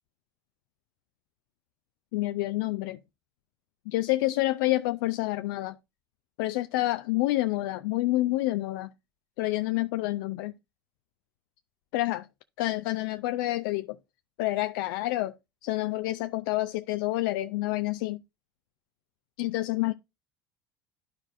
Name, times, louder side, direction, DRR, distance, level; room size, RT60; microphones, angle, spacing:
voice 1, 2.1-3.0 3.9-5.8 6.4-8.9 9.4-10.5 11.9-12.3 12.6-14.0 14.4-15.3 15.6-18.2 19.4-19.9, left 18 dB, 65° left, 0.4 m, -28 dB
12.0 x 4.7 x 2.6 m
hypercardioid pair, 70°, 12 cm